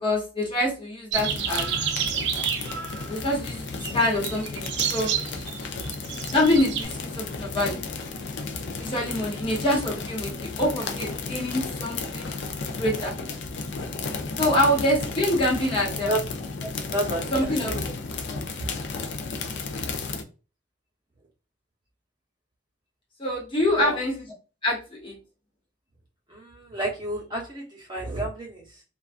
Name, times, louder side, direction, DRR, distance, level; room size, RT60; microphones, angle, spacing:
voice 1, 0.0-1.7 3.1-4.6 4.9-5.2 6.3-7.8 8.8-12.3 12.8-13.1 14.4-16.1 17.3-17.8 18.3-18.4 23.2-24.1 24.6-25.1, left 1 dB, 30° left, -2 dB, 0.6 m, -25 dB
sound 1, 1.1-20.2, left 4 dB, 80° left, 0.4 m, -33 dB
sound 2, 1.1-3.3 3.8-6.8, right 8 dB, 70° right, 0.4 m, -30 dB
voice 2, 16.9-17.8 23.7-24.0 26.3-28.8, right 1 dB, 25° right, -2 dB, 0.8 m, -31 dB
2.4 x 2.3 x 2.4 m, 0.33 s
head